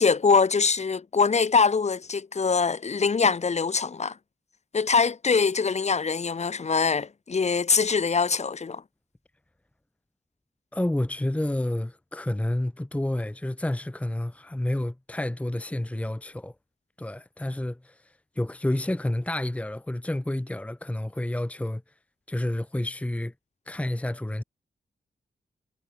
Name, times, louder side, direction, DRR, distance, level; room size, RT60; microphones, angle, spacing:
voice 1, 0.0-4.1 4.7-8.8, left 5 dB, 45° left, 2.4 m, -23 dB
voice 2, 10.7-16.5 17.0-17.9 18.4-21.8 22.3-23.3 23.7-24.4, left 1 dB, 10° left, 1.2 m, -29 dB
wide cardioid pair, 130°, 17 cm